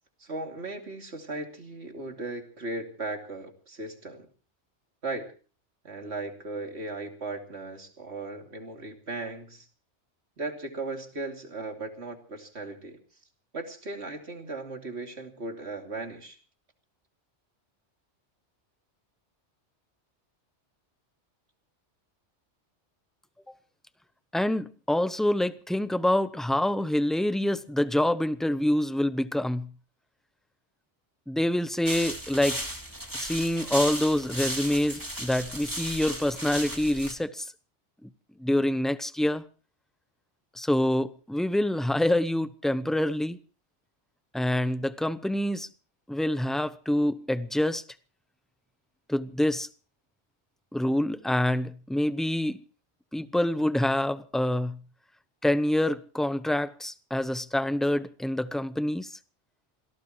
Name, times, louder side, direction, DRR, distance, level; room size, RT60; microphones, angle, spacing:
voice 1, 0.2-4.3 5.0-5.3 5.8-9.7 10.4-13.0 13.5-16.4, right 2 dB, 65° right, 3.0 m, -37 dB
voice 2, 24.3-29.7 31.3-32.6 33.1-37.5 38.0-38.1 38.4-39.4 40.6-43.4 44.3-45.7 46.1-47.8 49.1-49.7 50.7-52.6 53.1-54.8 55.4-59.2, left 1 dB, ahead, 0.5 m, -26 dB
sound 1, 31.8-37.1, right 1 dB, 15° right, 3.2 m, -35 dB
26.5 x 18.0 x 3.1 m
omnidirectional pair, 1.2 m